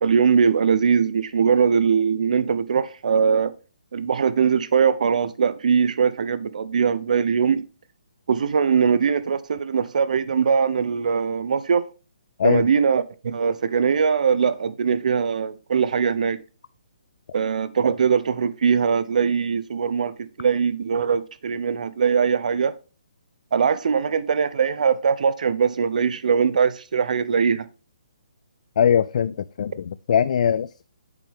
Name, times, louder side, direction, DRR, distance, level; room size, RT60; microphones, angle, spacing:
voice 1, 0.0-3.5 3.9-7.6 8.3-11.8 12.4-16.4 17.3-22.7 23.5-27.7, right 6 dB, 65° right, 0.6 m, -21 dB
voice 2, 28.8-30.8, left 8 dB, 55° left, 0.4 m, -21 dB
8.2 x 6.9 x 3.5 m
hypercardioid pair, 155°, 4 cm